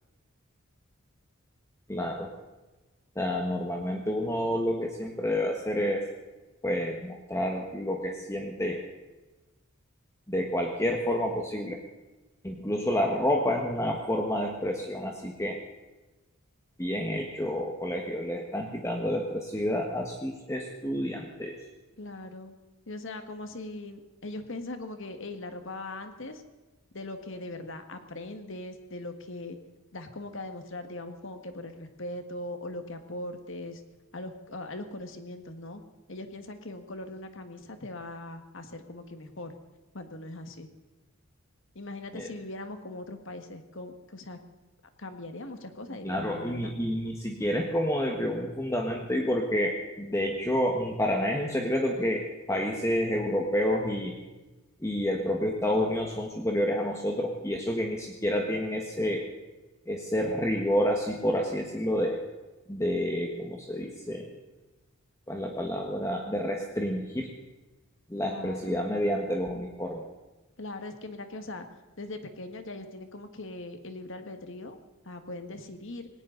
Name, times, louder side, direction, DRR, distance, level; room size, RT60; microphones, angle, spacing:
voice 1, 1.9-2.3 3.1-6.1 6.6-8.8 10.3-11.8 12.4-15.6 16.8-21.6 42.1-42.3 46.0-52.2 52.5-54.2 54.8-59.3 59.9-62.2 62.7-64.3 65.3-67.3 68.1-70.0, equal, 15° left, 1 dB, 1.4 m, -29 dB
voice 2, 22.0-22.5 22.9-26.4 26.9-29.6 29.9-33.8 34.1-35.8 36.1-39.5 39.9-40.7 41.8-44.4 45.0-46.8 68.2-68.8 70.6-71.7 72.0-74.8 75.1-76.1, left 2 dB, 60° left, 7 dB, 1.7 m, -40 dB
19.0 x 18.0 x 4.0 m, 1.1 s
head